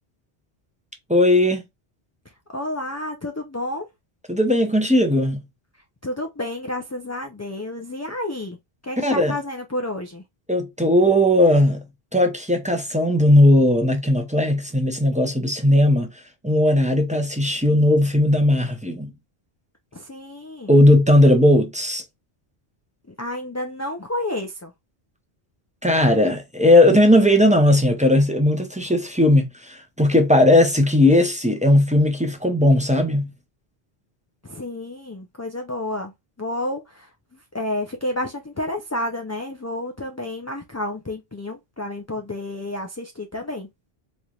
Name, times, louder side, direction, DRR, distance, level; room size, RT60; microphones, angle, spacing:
voice 1, 1.1-1.6 4.3-5.4 9.0-9.4 10.5-11.8 12.1-16.1 16.4-19.1 20.7-22.0 25.8-33.3, left 1 dB, 10° right, 0.7 m, -17 dB
voice 2, 2.5-3.9 6.0-8.6 8.8-10.2 19.9-20.7 23.2-24.7 34.4-36.1 36.4-37.1 37.5-43.7, left 1 dB, 25° left, 0.3 m, -30 dB
4.2 x 3.2 x 2.4 m
omnidirectional pair, 1.0 m